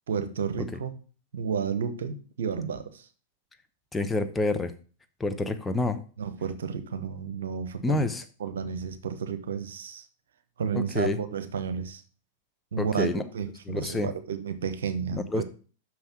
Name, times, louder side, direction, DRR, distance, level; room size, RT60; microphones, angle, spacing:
voice 1, 0.1-1.0 1.3-3.1 6.2-8.0 8.4-10.1 10.6-12.0 12.7-13.1 13.3-15.4, right 6 dB, 70° right, 10 dB, 1.0 m, -31 dB
voice 2, 3.9-4.7 5.2-6.0 7.8-8.2 10.7-11.2 12.8-13.2 13.7-14.1 15.1-15.4, left 2 dB, 10° left, 8 dB, 0.8 m, -28 dB
6.1 x 5.6 x 5.9 m, 0.38 s
figure-of-eight pair, 100°, 0 cm